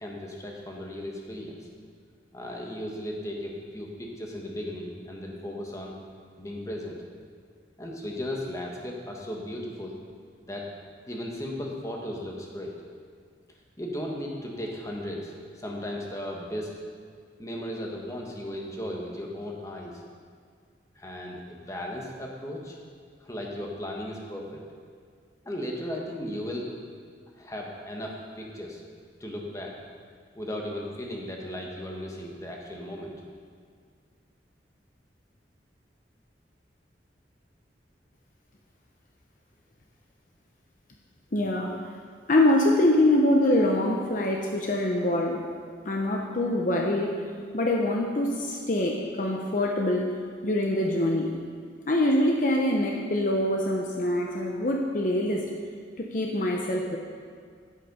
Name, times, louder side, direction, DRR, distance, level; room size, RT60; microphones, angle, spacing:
voice 1, 0.0-1.7 2.3-5.9 6.4-7.0 7.8-10.0 10.4-10.7 11.1-12.7 13.8-16.7 17.4-20.0 20.9-22.8 23.2-24.6 25.4-26.7 27.4-28.8 29.2-29.7 30.3-33.1, left 1 dB, 20° left, -1 dB, 1.3 m, -36 dB
voice 2, 41.3-41.8 42.3-45.4 45.8-47.1 47.5-50.1 50.4-51.3 51.9-55.4 56.0-57.0, left 1 dB, 45° left, 0 dB, 0.8 m, -24 dB
9.7 x 8.4 x 5.5 m, 2.1 s
head